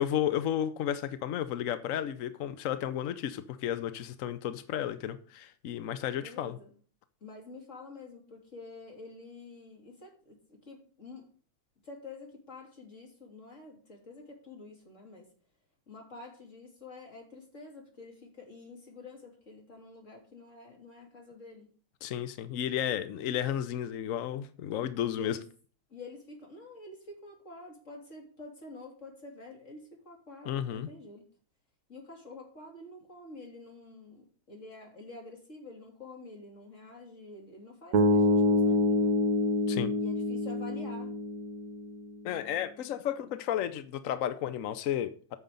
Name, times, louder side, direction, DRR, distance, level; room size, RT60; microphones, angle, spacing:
voice 1, 0.0-6.6 22.0-25.4 30.5-30.9 39.7-39.9 42.2-45.4, left 10 dB, 75° left, 0.7 m, -33 dB
voice 2, 6.2-6.7 7.2-11.3 11.8-15.3 15.9-21.7 25.1-25.4 25.9-31.3 31.9-39.2 40.0-41.1, left 2 dB, 35° left, 3.4 m, -48 dB
sound 1, 37.9-42.1, left 1 dB, 60° right, 1.2 m, -26 dB
9.1 x 6.6 x 6.9 m
omnidirectional pair, 2.3 m